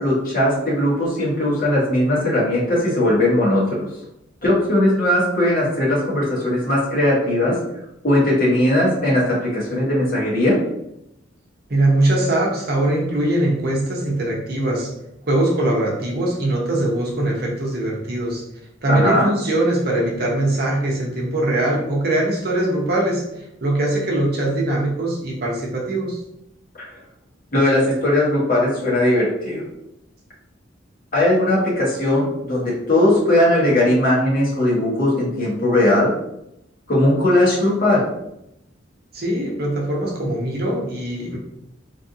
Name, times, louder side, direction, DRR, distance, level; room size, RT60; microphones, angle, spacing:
voice 1, 0.0-3.9 4.4-7.5 8.0-10.6 18.9-19.3 27.5-29.6 31.1-36.1 36.9-38.0, left 1 dB, 50° left, -6 dB, 1.3 m, -18 dB
voice 2, 11.7-14.9 15.3-18.4 18.8-23.3 23.6-26.2 39.1-41.4, right 1 dB, 55° right, -2 dB, 0.8 m, -21 dB
3.3 x 2.5 x 2.7 m, 0.81 s
head